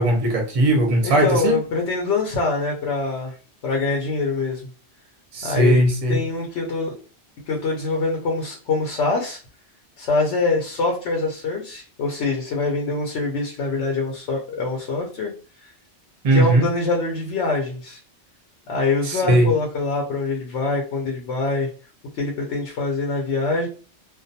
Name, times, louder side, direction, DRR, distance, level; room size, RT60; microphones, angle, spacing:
voice 1, 0.0-1.6 5.3-6.2 16.2-16.7 19.1-19.5, right 1 dB, 45° right, 0.5 m, -18 dB
voice 2, 1.0-3.3 3.6-4.6 5.4-5.8 6.1-6.9 7.5-9.4 10.0-15.3 16.3-18.0 18.7-21.7 22.1-23.7, left 3 dB, 80° left, 0.9 m, -24 dB
2.3 x 2.2 x 2.6 m
omnidirectional pair, 1.2 m